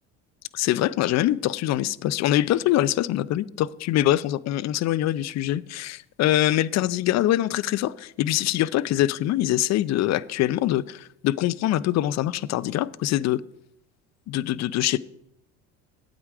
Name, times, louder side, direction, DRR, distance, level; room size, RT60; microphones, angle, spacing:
voice 1, 0.5-13.4 14.3-15.0, left 14 dB, 50° left, 0.5 m, -24 dB
8.8 x 8.6 x 4.8 m
supercardioid pair, 90°, 36 cm